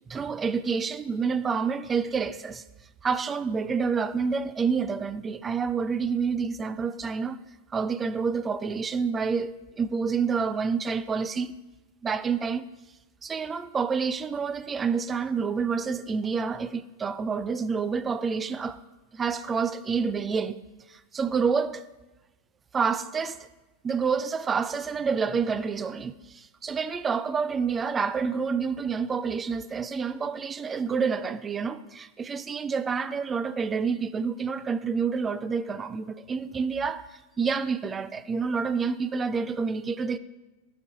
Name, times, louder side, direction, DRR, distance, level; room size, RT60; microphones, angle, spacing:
voice 1, 0.1-2.6 3.0-7.4 7.7-11.5 12.0-12.7 13.2-18.8 19.1-20.6 20.9-21.8 22.7-23.5 23.8-37.1 37.4-40.2, right 5 dB, 20° right, 0.4 m, -28 dB
15.5 x 5.3 x 3.8 m
figure-of-eight pair, 90°, 0 cm